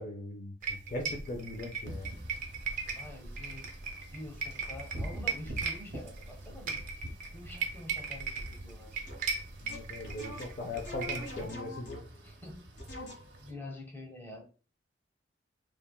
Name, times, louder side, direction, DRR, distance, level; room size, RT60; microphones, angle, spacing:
voice 1, 0.0-2.1 9.6-12.0, left 2 dB, 45° left, 1 dB, 0.4 m, -39 dB
sound 1, 0.6-11.5, right 5 dB, 50° right, 0.5 m, -39 dB
Wind / Rain, 1.9-13.5, right 1 dB, 80° right, 0.7 m, -47 dB
voice 2, 2.8-3.7 4.1-9.0 12.2-14.5, left 1 dB, 10° left, 0 dB, 0.8 m, -47 dB
sound 2, 9.1-9.3 9.7-12.3 12.8-13.5, left 2 dB, 85° left, 1.0 m, -44 dB
3.3 x 2.2 x 2.2 m, 0.35 s
head